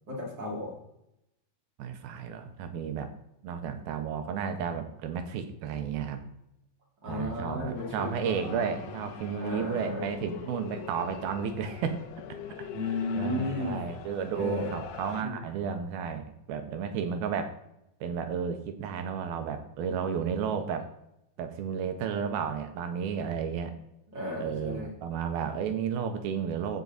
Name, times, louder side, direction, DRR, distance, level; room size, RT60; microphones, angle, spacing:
voice 1, 0.1-0.7 7.0-8.1 9.4-10.0 12.7-13.8 14.3-14.7 15.2-15.4 24.1-24.9, left 2 dB, 30° right, -3 dB, 3.6 m, -33 dB
voice 2, 1.8-3.1 3.4-6.2 7.1-12.0 12.6-12.7 13.2-17.6 18.0-20.9 21.4-23.8 24.4-26.8, right 7 dB, 75° right, 7 dB, 2.6 m, -32 dB
sound 1, 7.7-15.2, left 9 dB, 80° left, 2.6 m, -43 dB
15.5 x 6.1 x 4.1 m, 0.82 s
omnidirectional pair, 4.8 m